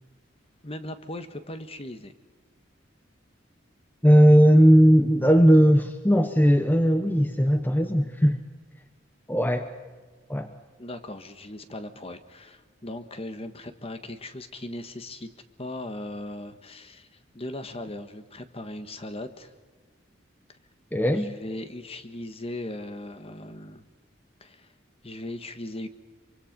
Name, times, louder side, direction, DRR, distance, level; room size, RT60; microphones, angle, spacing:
voice 1, 0.6-2.1 10.8-15.3 15.6-17.1 17.3-19.5 21.1-23.8 24.4-24.7 25.0-25.9, left 1 dB, 30° left, 9 dB, 1.5 m, -38 dB
voice 2, 4.0-8.4 9.3-9.7 10.3-10.5 20.9-21.3, equal, 10° left, 7 dB, 1.0 m, -18 dB
25.0 x 24.0 x 5.3 m, 1.4 s
head